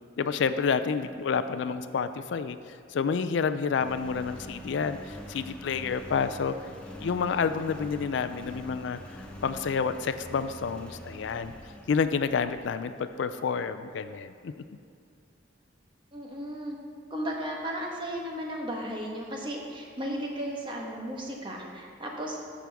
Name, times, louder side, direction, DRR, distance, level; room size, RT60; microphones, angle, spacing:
voice 1, 0.2-2.6 2.9-6.7 7.0-9.0 9.4-11.5 11.9-14.5, left 5 dB, 70° left, 12 dB, 0.4 m, -29 dB
Engine, 3.8-13.2, equal, 5° left, 0.8 m, -45 dB
voice 2, 16.1-16.8 17.1-22.4, equal, 25° right, -1 dB, 1.3 m, -35 dB
14.0 x 6.1 x 3.5 m, 2.4 s
head